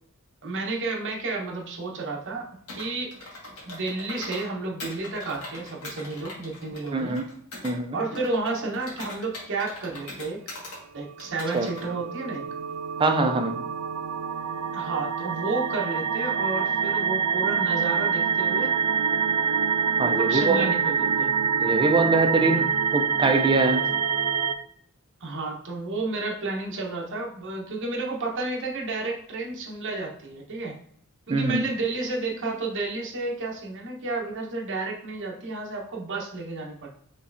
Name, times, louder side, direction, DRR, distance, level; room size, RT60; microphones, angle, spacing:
voice 1, 0.4-3.3 3.7-7.2 7.9-10.4 10.9-12.4 14.7-18.7 20.0-21.3 25.2-30.8 31.3-36.9, right 3 dB, 55° right, -1 dB, 1.0 m, -31 dB
Computer keyboard, 2.7-4.5 4.8-7.7 8.1-10.8 11.2-11.9, left 2 dB, 80° left, 1.5 m, -41 dB
voice 2, 6.9-7.3 7.6-8.0 11.5-11.7 13.0-13.6 20.0-20.7 21.6-23.9 31.3-31.6, right 3 dB, 20° right, 5 dB, 0.4 m, -23 dB
sound 1, 11.3-24.5, right 6 dB, 80° right, 0.4 m, -26 dB
5.4 x 3.2 x 2.6 m, 0.65 s
head